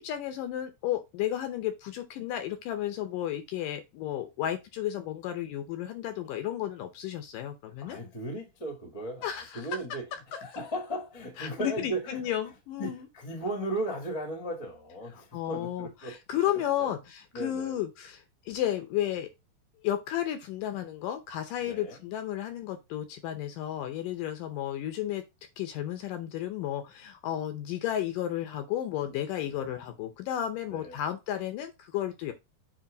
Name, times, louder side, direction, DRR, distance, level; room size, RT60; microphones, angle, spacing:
voice 1, 0.0-8.0 9.2-9.6 11.4-13.0 15.3-19.3 19.8-25.2 25.6-32.3, left 11 dB, 75° left, 2.1 m, -33 dB
voice 2, 7.8-16.2 16.5-16.9 17.3-17.8 21.6-22.0 29.4-29.7 30.7-31.0, right 1 dB, 25° left, 0.6 m, -37 dB
7.4 x 3.1 x 5.1 m
omnidirectional pair, 4.3 m